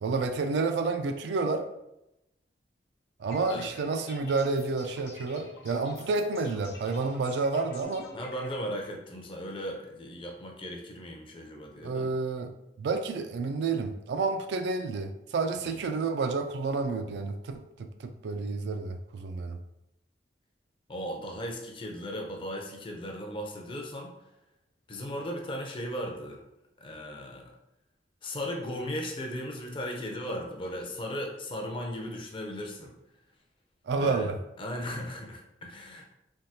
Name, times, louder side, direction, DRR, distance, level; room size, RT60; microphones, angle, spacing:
voice 1, 0.0-1.7 3.2-8.1 11.8-12.5 12.8-19.6 33.9-34.4, right 4 dB, 75° right, 7 dB, 0.3 m, -30 dB
sound 1, 3.3-8.6, left 2 dB, 75° left, 0.7 m, -49 dB
voice 2, 8.1-12.1 15.6-15.9 20.9-24.1 24.9-26.4 26.8-27.5 28.2-32.9 34.0-34.3 34.6-36.1, equal, 30° left, 1 dB, 0.5 m, -37 dB
3.4 x 2.3 x 2.7 m, 0.88 s
head